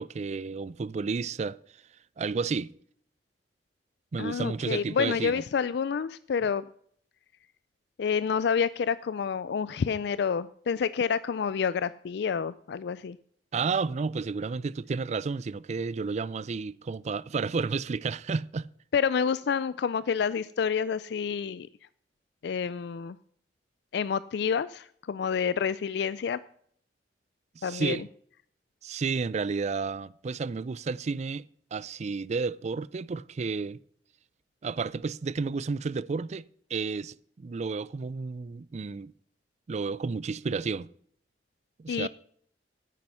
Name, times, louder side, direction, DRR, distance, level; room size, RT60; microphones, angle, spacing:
voice 1, 0.0-1.6 2.2-2.7 4.1-5.4 13.5-18.7 27.6-28.1 28.8-33.8 34.6-36.5 36.7-39.1 39.7-40.9 41.8-42.1, right 4 dB, 40° right, 0.4 m, -31 dB
voice 2, 4.2-6.6 8.0-13.2 18.9-21.7 22.4-23.2 23.9-26.4 27.6-28.0 41.9-42.1, left 6 dB, 65° left, 0.4 m, -28 dB
9.6 x 9.1 x 5.6 m
head